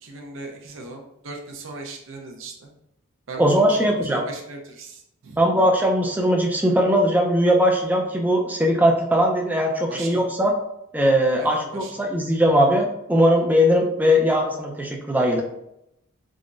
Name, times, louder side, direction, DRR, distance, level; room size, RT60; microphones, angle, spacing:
voice 1, 0.0-2.7 3.3-5.4 9.9-10.2 11.4-11.9, right 3 dB, 65° right, 2 dB, 0.6 m, -38 dB
voice 2, 3.4-4.2 5.4-10.5 10.9-15.4, equal, 10° right, 0 dB, 0.3 m, -20 dB
3.7 x 2.0 x 2.4 m, 0.80 s
head